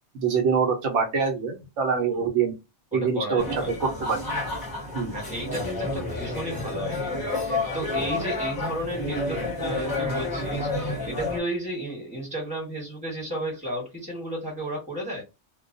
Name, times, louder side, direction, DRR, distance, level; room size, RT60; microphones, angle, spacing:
voice 1, 0.1-2.6 2.9-3.4 3.8-4.2 4.9-5.1, right 6 dB, 85° right, 1.0 m, -24 dB
voice 2, 2.9-3.7 5.1-15.2, equal, 5° right, 1.1 m, -33 dB
sound 1, 3.4-11.4, left 2 dB, 25° left, 0.6 m, -30 dB
2.2 x 2.2 x 2.5 m
omnidirectional pair, 1.2 m